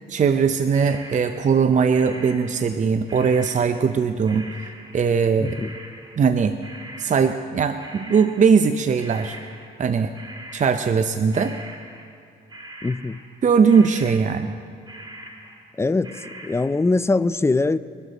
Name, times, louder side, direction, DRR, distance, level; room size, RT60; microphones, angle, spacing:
voice 1, 0.1-4.5 4.9-5.6 6.2-6.5 7.0-9.4 9.8-10.1 10.5-11.5 13.4-14.5, right 6 dB, 40° right, 9 dB, 0.6 m, -20 dB
sound 1, 0.7-2.8 3.1-9.9 10.1-13.4 13.7-14.6 14.9-16.7, right 1 dB, 20° right, 1.8 m, -42 dB
voice 2, 5.4-5.7 12.8-13.2 15.8-17.8, left 3 dB, 15° left, 15 dB, 0.4 m, -22 dB
22.0 x 12.5 x 4.1 m, 2.5 s
cardioid pair, 90°, 20 cm